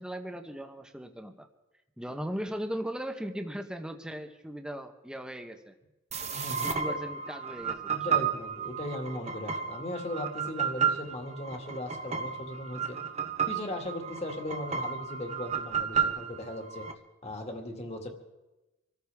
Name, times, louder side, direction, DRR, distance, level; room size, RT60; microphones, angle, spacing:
voice 1, 0.0-1.5 2.0-5.7 6.5-8.0, equal, 5° right, 5 dB, 1.0 m, -38 dB
sound 1, 6.1-16.9, right 7 dB, 30° right, 1.0 m, -32 dB
voice 2, 6.3-7.0 7.9-13.0 13.5-16.9 17.2-18.1, left 1 dB, 30° left, 3 dB, 2.0 m, -38 dB
26.0 x 14.5 x 3.5 m, 1.0 s
head